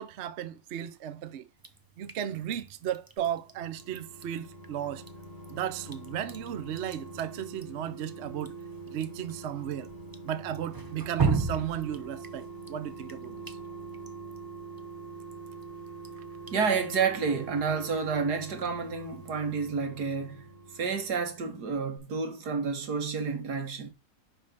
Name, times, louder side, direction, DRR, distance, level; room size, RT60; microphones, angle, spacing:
voice 1, 0.0-1.5 2.0-5.1 5.5-8.5 8.9-9.9 10.2-13.6, right 10 dB, 55° right, 0.8 m, -35 dB
Drip, 1.6-19.9, right 4 dB, 35° right, 0.3 m, -39 dB
sound 1, 3.4-21.7 22.0-22.1, right 3 dB, 35° left, 2.4 m, -45 dB
voice 2, 16.5-23.9, right 5 dB, 80° right, 2.0 m, -30 dB
5.5 x 5.3 x 6.6 m
omnidirectional pair, 1.7 m